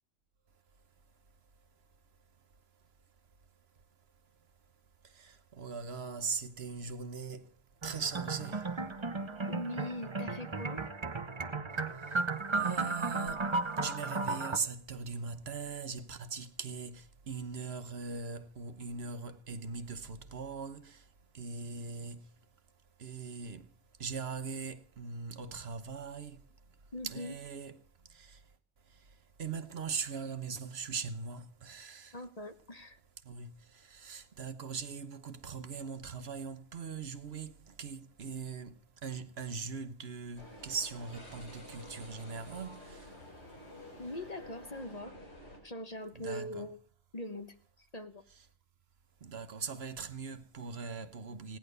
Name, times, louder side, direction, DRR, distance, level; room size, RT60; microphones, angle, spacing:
voice 1, 5.0-7.6 7.8-8.9 11.9-22.4 23.0-23.7 24.0-26.5 27.0-27.8 28.0-28.5 28.9-32.2 33.2-43.2 43.8-43.9 46.1-46.7 49.2-51.6, right 5 dB, 60° right, 1.2 m, -41 dB
sound 1, 7.8-14.6, right 3 dB, 25° right, 0.8 m, -35 dB
voice 2, 9.5-10.9 26.9-27.4 32.1-33.0 44.0-45.1 45.6-46.8 47.1-48.2, left 1 dB, 35° left, 1.3 m, -41 dB
sound 2, 40.4-45.6, left 1 dB, 65° left, 6.1 m, -50 dB
17.5 x 10.5 x 6.7 m
omnidirectional pair, 1.2 m